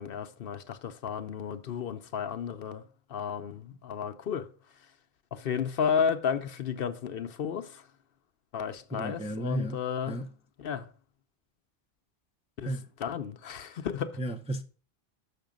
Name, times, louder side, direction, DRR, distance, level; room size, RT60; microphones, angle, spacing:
voice 1, 0.0-4.5 4.8-4.9 5.3-7.9 8.5-10.2 10.6-10.9 12.6-14.2, left 7 dB, 65° left, 0.8 m, -33 dB
voice 2, 8.9-9.8 10.1-10.2 12.6-12.8 14.2-14.6, right 1 dB, 10° right, 0.4 m, -33 dB
6.7 x 5.9 x 5.1 m
omnidirectional pair, 1.1 m